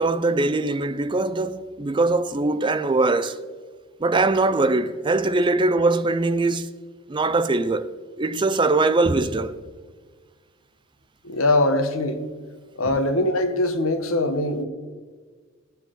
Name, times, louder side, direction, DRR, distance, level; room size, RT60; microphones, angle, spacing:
voice 1, 0.0-3.4 4.0-6.7 7.1-7.9 8.2-9.6, right 2 dB, 25° right, 0.4 m, -21 dB
voice 2, 11.2-12.2 12.8-14.6, left 2 dB, 85° left, 1.3 m, -22 dB
20.0 x 7.3 x 3.8 m
head